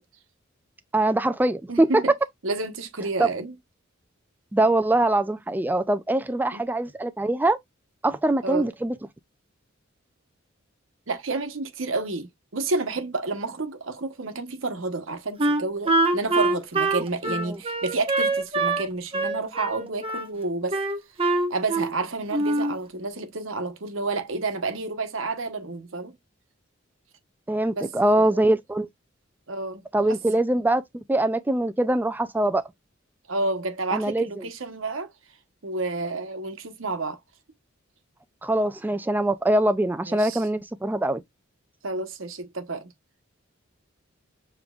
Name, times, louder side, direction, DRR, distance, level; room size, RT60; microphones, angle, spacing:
voice 1, 0.9-1.9 3.2-3.3 4.5-7.6 8.0-8.9 17.3-17.6 27.5-28.9 29.9-30.8 31.1-32.6 33.9-34.5 38.4-41.2, right 1 dB, 10° right, 0.3 m, -23 dB
voice 2, 1.7-2.1 2.4-3.5 6.5-6.6 8.4-8.7 11.1-20.8 21.5-26.1 27.7-27.9 28.2-28.4 29.5-30.2 33.3-35.1 35.6-37.2 40.1-40.4 41.8-42.9, right 3 dB, 80° right, 1.0 m, -30 dB
Wind instrument woodwind instrument, 15.4-18.9 19.1-20.3 20.7-22.0 22.3-22.8, right 2 dB, 30° right, 0.9 m, -24 dB
6.9 x 3.1 x 2.3 m
head